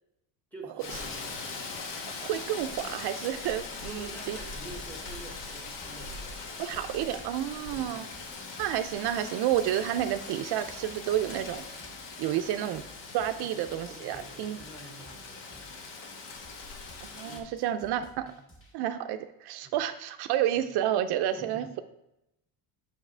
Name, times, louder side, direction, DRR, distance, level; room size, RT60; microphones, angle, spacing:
voice 1, 0.5-1.6 3.8-6.4 7.7-8.0 13.4-13.5 14.0-15.7 17.1-17.5 18.2-18.4 19.6-19.8 20.5-20.6 21.3-21.7, right 2 dB, 5° left, 2 dB, 1.0 m, -48 dB
Rain, 0.8-17.4, left 4 dB, 80° left, 1.3 m, -41 dB
voice 2, 2.2-4.4 6.6-8.1 8.6-11.6 12.2-12.8 13.1-14.6 17.0-18.3 18.7-21.7, right 11 dB, 65° right, 9 dB, 0.5 m, -30 dB
sound 1, 4.0-18.7, right 1 dB, 30° left, 2.1 m, -56 dB
7.2 x 6.4 x 3.3 m, 0.87 s
cardioid pair, 170°, 42 cm